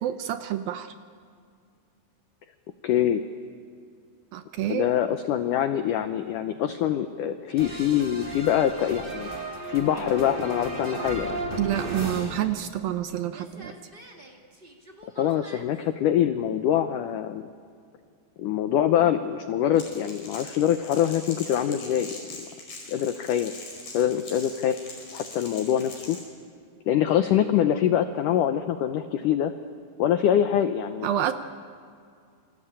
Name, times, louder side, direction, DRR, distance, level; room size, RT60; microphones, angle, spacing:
voice 1, 0.0-0.9 4.3-4.9 11.5-13.8 31.0-31.3, right 12 dB, 75° right, 9 dB, 2.3 m, -28 dB
voice 2, 2.8-3.2 4.7-9.3 9.7-11.4 15.2-17.5 18.4-22.1 22.9-23.5 23.9-24.8 25.1-26.2 26.9-29.5 30.0-31.1, left 10 dB, 85° left, 9 dB, 1.8 m, -24 dB
sound 1, 7.6-13.0 13.3-15.6, right 1 dB, 25° right, 1.2 m, -36 dB
Crackle, 19.7-26.2, left 3 dB, 55° left, 6.6 m, -42 dB
28.0 x 23.0 x 8.9 m, 2.3 s
omnidirectional pair, 4.9 m